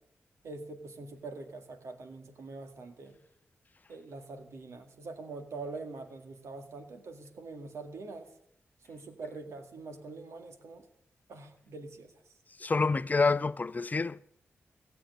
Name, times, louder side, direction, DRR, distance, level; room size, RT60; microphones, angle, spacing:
voice 1, 0.4-3.2 3.9-8.3 8.9-10.8 11.3-12.1, right 3 dB, 80° right, 2.0 m, -44 dB
voice 2, 12.6-14.3, left 4 dB, 35° left, 0.5 m, -28 dB
16.0 x 7.7 x 9.4 m
cardioid pair, 70°, 5 cm